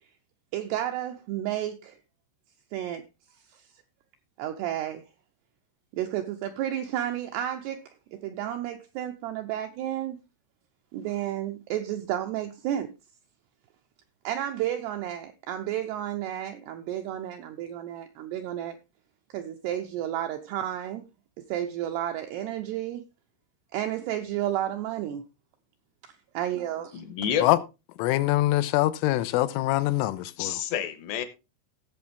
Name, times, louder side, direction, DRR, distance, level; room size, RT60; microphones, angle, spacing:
voice 1, 0.5-2.0 2.7-3.0 3.5-3.6 4.4-5.0 5.9-10.2 10.9-12.9 14.2-18.8 19.3-21.0 21.5-23.0 23.7-25.2 26.0-27.0, right 11 dB, 85° right, 2.4 m, -32 dB
voice 2, 26.9-27.4 30.4-31.3, left 9 dB, 70° left, 3.0 m, -29 dB
voice 3, 28.0-30.6, left 16 dB, 90° left, 3.2 m, -24 dB
16.5 x 7.0 x 3.4 m
omnidirectional pair, 5.6 m